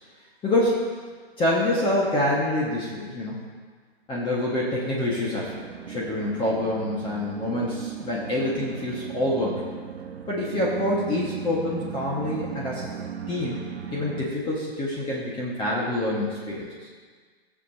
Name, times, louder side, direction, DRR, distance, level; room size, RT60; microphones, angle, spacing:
voice 1, 0.4-0.8 1.4-3.5 4.1-5.5 5.9-9.6 10.3-12.9 13.3-16.7, left 1 dB, 15° left, -5 dB, 1.6 m, -26 dB
sound 1, 5.4-14.3, right 8 dB, 80° right, 0.9 m, -37 dB
17.5 x 7.2 x 2.9 m, 1.5 s
hypercardioid pair, 135°, 32 cm